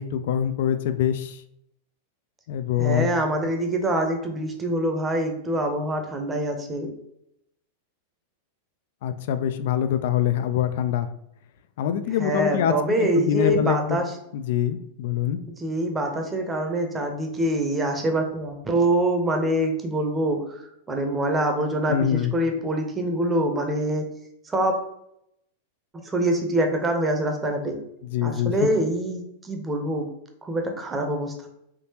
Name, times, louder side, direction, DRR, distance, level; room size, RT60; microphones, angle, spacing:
voice 1, 0.0-1.4 2.5-3.1 9.0-11.1 11.8-12.7 13.0-14.0 14.3-15.4 21.9-22.3 28.0-28.5, left 10 dB, 65° left, 11 dB, 0.3 m, -24 dB
voice 2, 2.8-6.9 12.1-14.2 15.6-24.0 24.4-24.7 25.9-27.8 28.2-30.0 30.5-31.5, right 1 dB, 15° right, 4 dB, 0.7 m, -25 dB
3.6 x 2.8 x 2.8 m, 0.78 s
hypercardioid pair, 115°, 0 cm